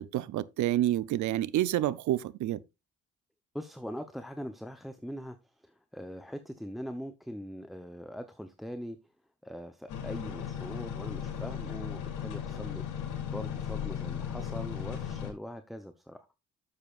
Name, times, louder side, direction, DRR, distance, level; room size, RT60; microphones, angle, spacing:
voice 1, 0.0-2.6, right 13 dB, 75° right, 0.7 m, -28 dB
voice 2, 3.5-9.0 9.4-16.3, equal, ahead, 0.8 m, -42 dB
sound 1, 9.9-15.3, left 8 dB, 85° left, 3.5 m, -36 dB
11.0 x 7.4 x 2.5 m
cardioid pair, 90°, 30 cm